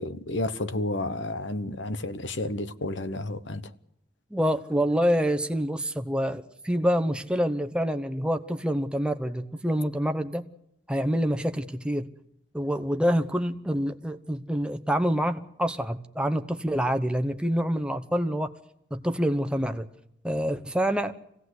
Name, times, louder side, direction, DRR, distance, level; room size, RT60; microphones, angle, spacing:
voice 1, 0.0-3.7, left 2 dB, 80° left, 1.0 m, -31 dB
voice 2, 4.3-10.5 10.9-12.1 12.5-18.5 18.9-19.9 20.2-21.1, equal, 5° right, 0.9 m, -26 dB
24.5 x 17.0 x 8.0 m
head